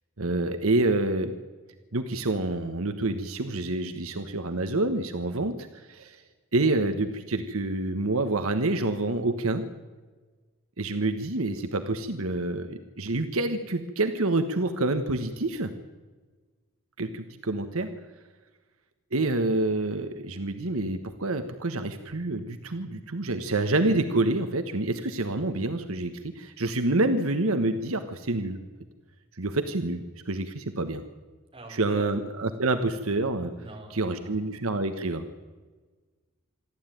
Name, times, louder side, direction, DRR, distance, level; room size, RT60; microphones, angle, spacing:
voice 1, 0.2-1.4 1.9-6.2 6.5-9.7 10.8-15.7 17.0-17.9 19.1-28.6 29.3-31.0 31.7-33.5 33.9-35.4, right 2 dB, 75° right, 8 dB, 1.3 m, -27 dB
voice 2, 31.5-32.1 33.5-34.5, right 1 dB, 25° right, 1 dB, 5.0 m, -44 dB
26.5 x 12.0 x 9.2 m, 1.4 s
head